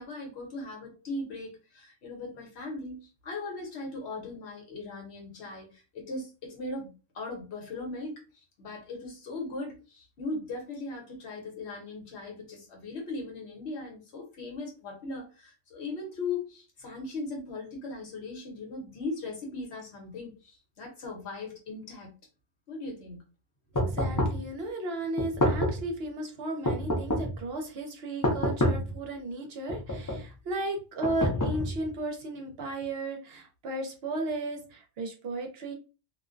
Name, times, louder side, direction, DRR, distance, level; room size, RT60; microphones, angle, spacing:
voice 1, 0.0-8.1 8.6-22.1 22.7-23.2 23.8-23.9, left 3 dB, 60° left, 1.0 m, -38 dB
sound 1, 23.7-24.5 25.2-25.9 26.6-27.4 28.2-29.0 29.7-30.3 31.0-31.9, equal, 30° left, 0.3 m, -28 dB
voice 2, 24.0-35.7, right 2 dB, 60° right, 0.8 m, -35 dB
2.4 x 2.1 x 2.4 m
omnidirectional pair, 1.3 m